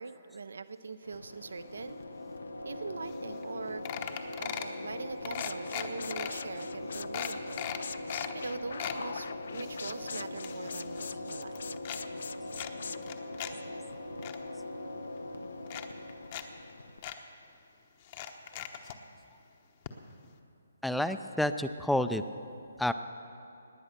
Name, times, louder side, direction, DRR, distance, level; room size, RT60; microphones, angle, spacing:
voice 1, 0.0-2.1 2.6-3.8 4.4-7.7 8.3-11.8, right 4 dB, 75° right, 13 dB, 0.6 m, -42 dB
sound 1, 1.0-17.0, left 2 dB, 85° left, 1.1 m, -41 dB
sound 2, 3.1-3.2 3.4-3.6 3.9-4.8 5.2-6.3 6.8-6.9 7.1-8.3 8.6-9.0 9.5-11.0 11.3-12.0 12.5-13.5 13.9-14.4 15.2-15.3 15.7-16.4 16.7-16.8 17.0-17.2 18.0-19.0 19.9-20.0 20.2-20.3, left 10 dB, 35° left, 1.0 m, -39 dB
sound 3, 5.2-13.0, left 6 dB, 65° left, 0.4 m, -43 dB
voice 2, 20.8-22.2 22.8-22.9, left 1 dB, ahead, 10 dB, 0.4 m, -29 dB
19.0 x 9.0 x 6.7 m, 2.7 s
hypercardioid pair, 150°, 0 cm